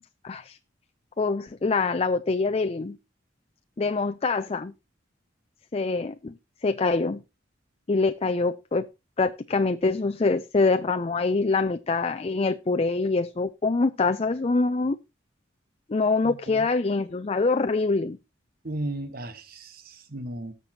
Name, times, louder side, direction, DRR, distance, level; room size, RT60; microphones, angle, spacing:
voice 1, 0.2-0.6 1.2-3.0 3.8-4.7 5.7-6.3 6.6-7.2 7.9-8.9 9.2-15.0 15.9-18.2, left 3 dB, 30° left, 0.5 m, -25 dB
voice 2, 16.2-16.7 18.6-20.5, right 1 dB, 50° right, 1.3 m, -35 dB
19.5 x 6.8 x 2.8 m
head